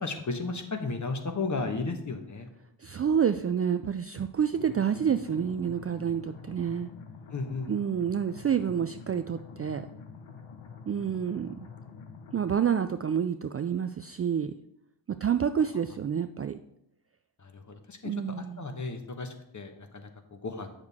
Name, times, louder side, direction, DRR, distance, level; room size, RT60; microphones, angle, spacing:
voice 1, 0.0-2.5 7.3-7.7 17.4-20.7, left 3 dB, 35° left, 6 dB, 1.3 m, -34 dB
voice 2, 2.8-6.9 7.7-9.9 10.9-11.5 12.3-14.5 15.2-16.6 18.0-18.6, right 8 dB, 30° right, 9 dB, 0.4 m, -28 dB
sound 1, 4.5-12.5, left 5 dB, 70° left, 1.1 m, -47 dB
8.0 x 6.5 x 3.6 m, 0.80 s
supercardioid pair, 50°, 49 cm